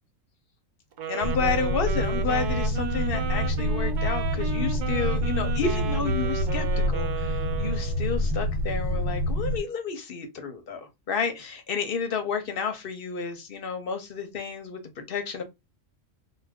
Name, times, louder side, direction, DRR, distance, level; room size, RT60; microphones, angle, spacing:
Wind instrument woodwind instrument, 0.9-8.1, right 6 dB, 65° right, 0.4 m, -34 dB
voice 1, 1.1-15.4, left 5 dB, 55° left, 0.7 m, -31 dB
sound 1, 1.2-9.6, equal, 80° right, 1.0 m, -27 dB
2.4 x 2.2 x 3.3 m
omnidirectional pair, 1.3 m